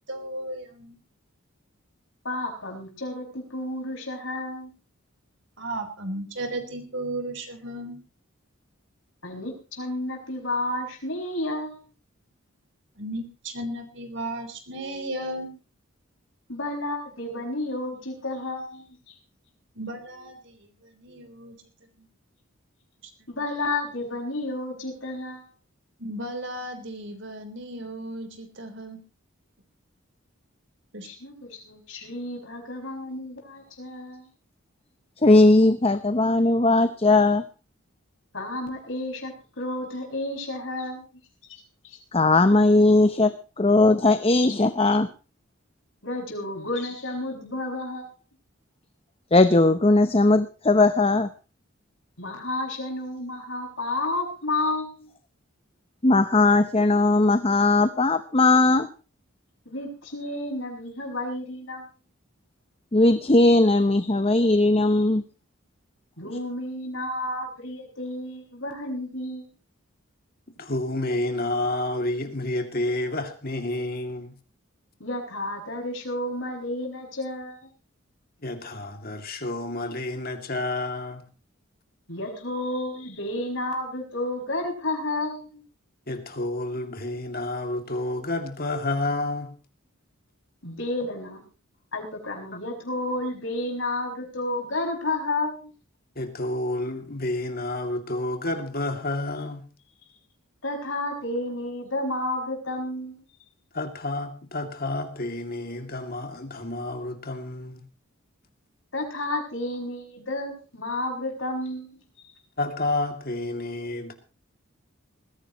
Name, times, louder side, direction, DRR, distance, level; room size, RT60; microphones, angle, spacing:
voice 1, 0.1-1.0 5.6-8.0 13.0-15.5 19.8-21.6 22.0-22.1 26.0-29.0 30.9-31.1, right 1 dB, 60° right, 3.7 m, -35 dB
voice 2, 2.2-4.7 9.2-11.8 16.5-19.2 23.3-25.5 31.0-34.3 38.3-41.1 41.5-42.0 44.4-44.5 46.0-48.1 52.2-55.1 59.6-61.9 66.2-69.5 75.0-77.7 82.1-85.6 90.6-91.4 91.9-95.7 100.6-103.2 108.9-112.0, left 2 dB, 65° left, 6.1 m, -31 dB
voice 3, 35.2-37.4 42.1-45.1 49.3-51.3 56.0-58.9 62.9-65.2, left 2 dB, 30° left, 0.8 m, -19 dB
voice 4, 70.6-74.4 78.4-81.2 86.1-89.5 96.2-99.7 103.7-107.8 112.6-114.1, left 2 dB, 45° left, 2.4 m, -30 dB
21.0 x 15.5 x 3.0 m
head